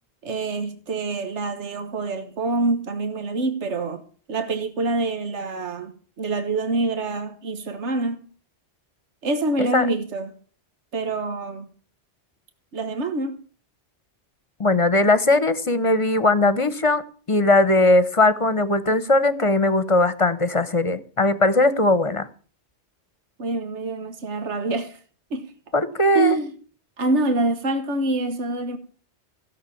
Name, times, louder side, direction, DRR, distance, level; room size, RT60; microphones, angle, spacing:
voice 1, 0.2-4.0 4.3-5.9 6.2-8.2 9.2-10.3 10.9-11.7 12.7-13.4 23.4-25.0 25.3-25.5 26.1-26.5 27.0-28.8, right 3 dB, 85° right, 1.5 m, -26 dB
voice 2, 14.6-17.0 17.3-22.3 25.7-26.4, left 2 dB, 30° left, 1.0 m, -19 dB
16.0 x 6.7 x 8.5 m
omnidirectional pair, 1.2 m